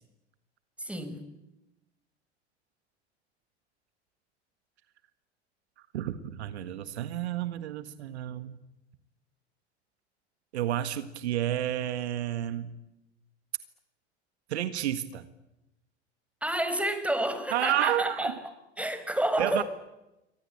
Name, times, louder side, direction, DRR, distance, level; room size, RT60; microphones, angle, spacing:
voice 1, 0.8-1.2 16.4-19.6, right 1 dB, 5° right, 10 dB, 5.2 m, -30 dB
voice 2, 5.9-8.6 10.5-12.7 14.5-15.2 17.5-18.3 19.4-19.6, right 12 dB, 70° right, 12 dB, 1.8 m, -30 dB
28.0 x 24.0 x 8.7 m, 0.95 s
figure-of-eight pair, 80°, 34 cm